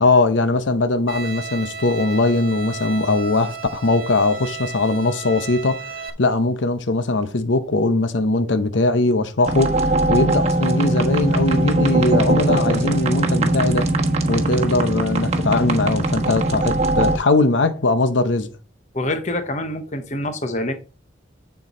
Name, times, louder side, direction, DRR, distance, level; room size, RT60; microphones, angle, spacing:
voice 1, 0.0-13.9 14.3-18.5, left 2 dB, 80° left, 0.8 m, -20 dB
Bowed string instrument, 1.1-6.1, right 4 dB, 50° right, 1.4 m, -34 dB
sound 1, 9.4-17.2, right 2 dB, 35° right, 1.2 m, -20 dB
voice 2, 18.9-20.7, left 1 dB, 40° left, 1.0 m, -26 dB
9.8 x 4.5 x 4.3 m
head